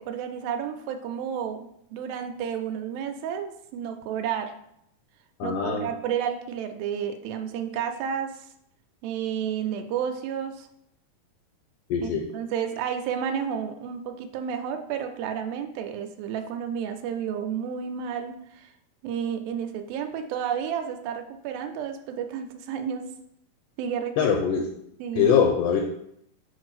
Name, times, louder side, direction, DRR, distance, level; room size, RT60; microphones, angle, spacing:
voice 1, 0.0-4.5 5.4-8.4 9.0-10.7 12.0-18.7 19.0-23.1 23.8-24.3 25.0-25.4, right 8 dB, 90° right, 6 dB, 2.4 m, -31 dB
voice 2, 5.4-5.9 11.9-12.2 24.2-24.7 25.2-25.8, left 7 dB, 75° left, 2 dB, 1.9 m, -22 dB
7.2 x 2.6 x 5.6 m, 0.75 s
omnidirectional pair, 4.1 m